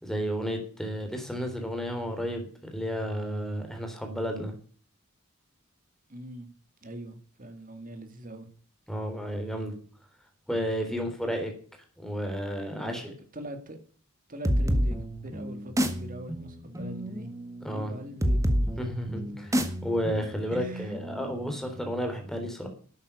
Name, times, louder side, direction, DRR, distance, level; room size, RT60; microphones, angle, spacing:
voice 1, 0.0-4.5 8.9-9.7 10.5-11.5 12.0-13.1 17.6-17.9 18.8-19.5 19.8-22.7, equal, ahead, 4 dB, 3.6 m, -32 dB
voice 2, 6.1-6.5 6.8-8.5 10.9-11.1 12.7-13.0 13.3-13.8 14.3-17.3 17.7-18.4 19.3-19.4 20.5-20.9, equal, 40° right, 7 dB, 2.6 m, -42 dB
sound 1, 14.4-21.8, equal, 15° right, 1.7 m, -29 dB
12.0 x 8.9 x 6.8 m, 0.44 s
head